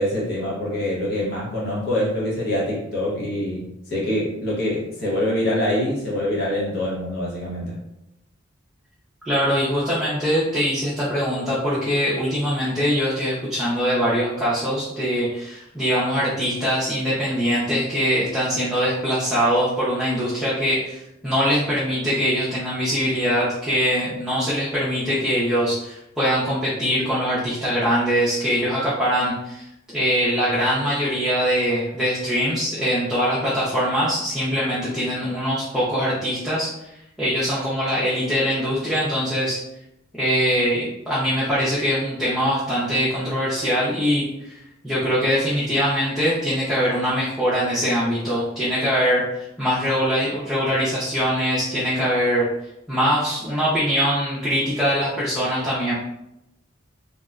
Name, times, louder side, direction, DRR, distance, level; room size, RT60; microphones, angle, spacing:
voice 1, 0.0-7.8, left 1 dB, 55° left, -5 dB, 0.8 m, -25 dB
voice 2, 9.3-39.6 40.2-52.5 52.9-55.9, equal, ahead, -10 dB, 0.5 m, -22 dB
2.8 x 2.1 x 2.4 m, 0.87 s
head